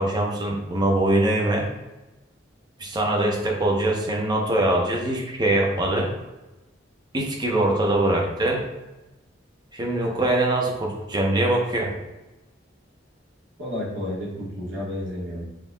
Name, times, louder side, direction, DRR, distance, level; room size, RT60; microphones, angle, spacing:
voice 1, 0.0-1.7 2.8-6.1 7.1-8.7 9.7-11.9, right 1 dB, 20° right, 0 dB, 0.7 m, -23 dB
voice 2, 13.6-15.4, left 1 dB, 75° right, -5 dB, 1.5 m, -31 dB
7.3 x 2.7 x 2.2 m, 1.0 s
head